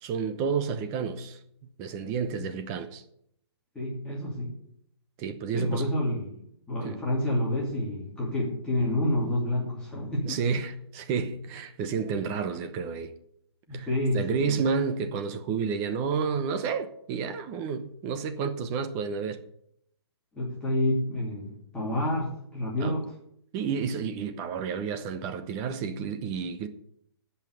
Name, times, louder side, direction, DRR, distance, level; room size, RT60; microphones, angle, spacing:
voice 1, 0.0-1.4 1.8-3.0 5.2-5.9 6.8-7.0 10.2-13.1 13.7-13.9 14.1-19.4 22.8-22.9 23.5-26.7, right 6 dB, 20° right, 0.8 m, -30 dB
voice 2, 3.7-4.5 5.5-6.4 6.7-10.4 13.7-14.6 20.3-23.0, left 1 dB, 5° left, 2.8 m, -29 dB
16.5 x 5.7 x 8.2 m
hypercardioid pair, 165°, 14 cm